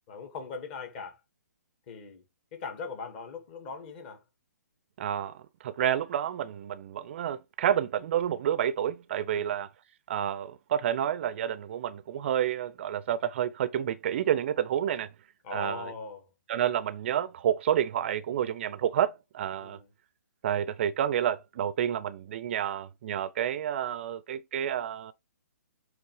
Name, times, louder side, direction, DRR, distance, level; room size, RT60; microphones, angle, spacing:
voice 1, 0.1-1.2 1.9-2.2 2.5-4.2 9.3-9.6 15.4-16.2 19.6-19.9, left 4 dB, 35° left, 2.4 m, -40 dB
voice 2, 5.0-5.4 5.6-9.7 10.1-15.1 15.5-15.9 16.5-19.8 20.4-25.1, right 10 dB, 40° right, 0.6 m, -29 dB
8.4 x 3.4 x 4.9 m
figure-of-eight pair, 130°, 9 cm